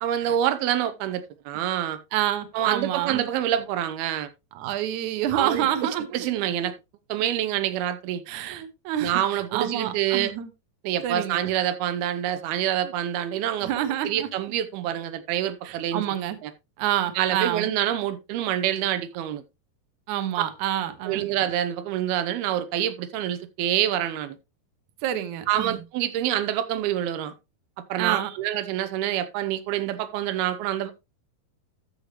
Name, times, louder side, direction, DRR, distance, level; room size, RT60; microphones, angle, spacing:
voice 1, 0.0-2.0 2.5-4.3 5.3-5.7 6.1-6.7 7.1-8.2 9.0-10.3 10.8-13.7 14.0-16.0 16.4-16.5 17.2-19.4 20.4-20.5 21.1-24.4 25.5-27.3 27.9-30.9, right 11 dB, 85° right, 2.6 m, -26 dB
voice 2, 2.1-3.3 4.6-6.3 8.3-10.5 11.0-11.5 12.8-12.9 13.6-14.3 15.6-16.4 16.8-17.7 20.1-21.3 25.0-25.8 28.0-28.4, right 11 dB, 65° right, 2.1 m, -28 dB
13.5 x 6.7 x 3.0 m
omnidirectional pair, 4.4 m